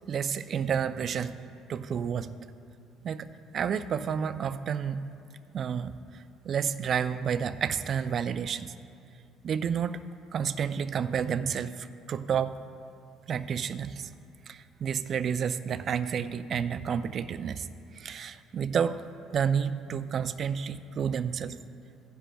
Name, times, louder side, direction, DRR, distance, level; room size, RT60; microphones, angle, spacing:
voice 1, 0.1-1.4 1.7-2.3 3.0-3.3 3.5-5.1 5.5-8.7 9.4-10.0 10.3-12.6 13.3-14.1 14.5-17.7 17.9-19.0 19.3-21.6, right 7 dB, 50° right, 12 dB, 0.4 m, -30 dB
16.0 x 10.0 x 2.3 m, 2.5 s
supercardioid pair, 90°, 0 cm